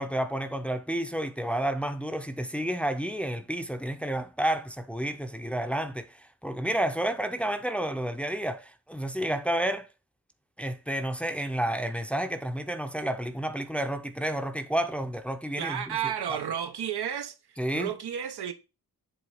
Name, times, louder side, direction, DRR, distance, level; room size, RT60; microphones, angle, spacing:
voice 1, 0.0-9.9 10.6-16.0 17.6-17.9, right 1 dB, 5° left, 0.6 m, -30 dB
voice 2, 15.6-17.3 17.7-18.5, right 9 dB, 90° right, 1.0 m, -32 dB
7.8 x 3.3 x 4.9 m
wide cardioid pair, 120°, 38 cm